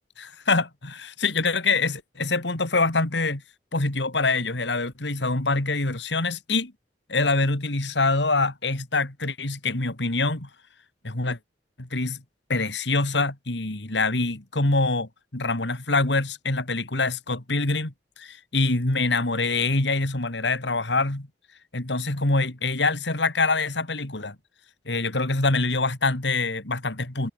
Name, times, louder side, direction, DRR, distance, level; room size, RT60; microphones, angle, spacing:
voice 1, 0.2-3.4 3.7-6.7 7.1-10.5 11.0-11.4 11.8-12.2 12.5-21.3 21.7-24.4 24.9-27.3, left 3 dB, 80° left, 2.7 m, -25 dB
head